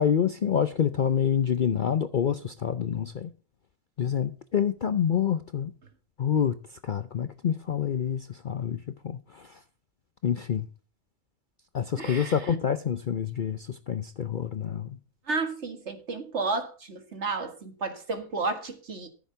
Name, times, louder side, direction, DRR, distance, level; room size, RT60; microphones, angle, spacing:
voice 1, 0.0-3.3 4.0-5.7 6.2-9.6 10.2-10.7 11.7-15.0, left 8 dB, 50° left, 0.6 m, -27 dB
voice 2, 12.0-12.6 15.3-19.1, right 3 dB, 55° right, 2.1 m, -32 dB
14.0 x 7.4 x 5.6 m
omnidirectional pair, 1.4 m